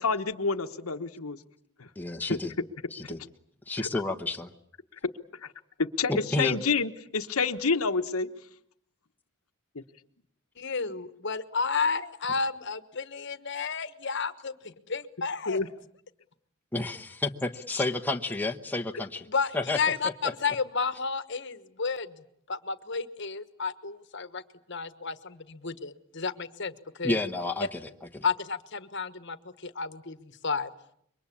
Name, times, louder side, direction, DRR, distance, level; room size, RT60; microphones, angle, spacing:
voice 1, 0.0-1.4 1.8-1.9 2.3-2.4 3.8-3.9 5.4-5.5 5.8-8.3 9.7-9.8 15.5-15.7, left 4 dB, 85° left, 7 dB, 1.3 m, -28 dB
voice 2, 2.0-2.5 2.9-3.2 3.7-4.5 6.1-6.6 16.7-19.3 19.5-19.8 27.0-27.8 28.1-28.2, left 2 dB, 10° left, 4 dB, 1.1 m, -30 dB
voice 3, 10.6-15.6 19.3-22.1 22.5-24.4 24.7-27.2 28.2-30.7, left 5 dB, 55° left, 13 dB, 1.4 m, -32 dB
27.5 x 23.5 x 8.6 m, 0.70 s
head